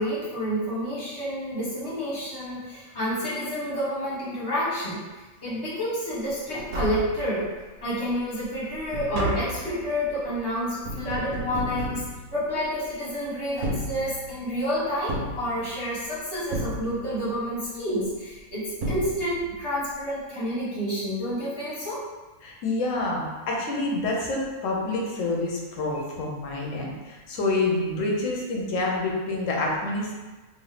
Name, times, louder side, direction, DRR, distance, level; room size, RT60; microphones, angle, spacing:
voice 1, 0.0-5.0 5.4-7.5 7.8-12.0 12.3-22.0, equal, 25° left, -9 dB, 1.0 m, -29 dB
Tap, 6.3-6.4 6.6-7.7 8.1-12.9 13.5-14.5 15.1-16.1 16.5-17.4 18.4-18.5 18.8-19.6 19.9-20.0, right 1 dB, 75° right, 1.0 m, -33 dB
voice 2, 22.4-30.1, left 2 dB, 70° left, -2 dB, 1.0 m, -27 dB
2.8 x 2.5 x 3.2 m, 1.2 s
omnidirectional pair, 1.5 m